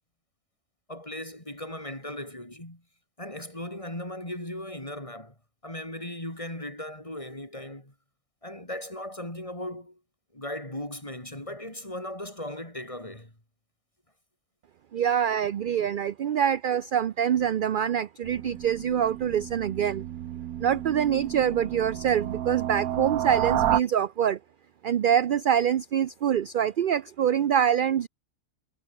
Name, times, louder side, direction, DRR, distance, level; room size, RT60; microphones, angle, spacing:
voice 1, 0.9-2.8 3.2-5.3 5.6-7.9 8.4-10.0 10.3-13.3 15.0-15.1, left 1 dB, 20° left, 5.4 m, -37 dB
voice 2, 14.9-20.0 20.6-24.4 24.8-28.1, right 9 dB, 60° right, 0.5 m, -25 dB
sound 1, 18.2-23.8, right 12 dB, 90° right, 1.3 m, -31 dB
omnidirectional pair, 1.5 m